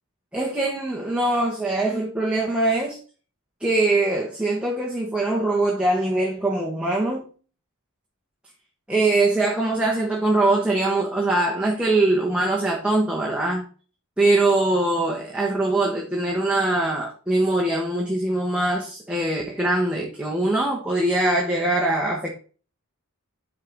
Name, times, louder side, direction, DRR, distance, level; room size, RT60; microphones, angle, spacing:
voice 1, 0.3-3.0 3.6-7.3 8.9-13.6 14.2-22.3, right 2 dB, 5° right, 1.1 m, -22 dB
8.4 x 4.7 x 3.9 m
head